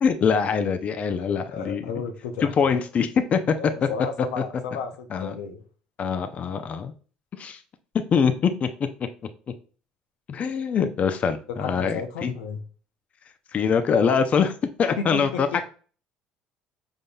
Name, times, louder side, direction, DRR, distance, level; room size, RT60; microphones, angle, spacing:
voice 1, 0.0-1.8 2.6-3.5 4.4-4.5 5.1-5.4 6.0-6.9 7.3-7.6 7.9-9.1 10.3-12.3 13.5-14.5 14.8-15.7, left 6 dB, 45° left, 9 dB, 0.5 m, -23 dB
voice 2, 1.2-2.8 3.5-5.6 11.6-12.6 15.0-15.6, left 5 dB, 85° left, 6 dB, 0.7 m, -33 dB
5.2 x 3.6 x 2.3 m, 0.40 s
hypercardioid pair, 70°, 3 cm